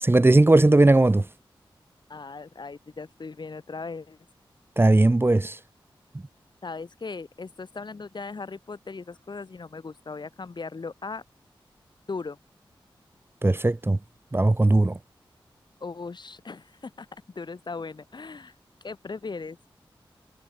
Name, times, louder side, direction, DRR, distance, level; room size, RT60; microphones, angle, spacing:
voice 1, 0.0-1.2 4.8-5.6 13.4-14.0 14.3-15.0, right 2 dB, 25° right, 1.6 m, -18 dB
voice 2, 2.1-4.2 6.6-11.2 12.1-12.4 15.8-17.1 17.4-18.5 18.8-19.6, left 4 dB, 55° left, 3.9 m, -38 dB
cardioid pair, 60°, 9 cm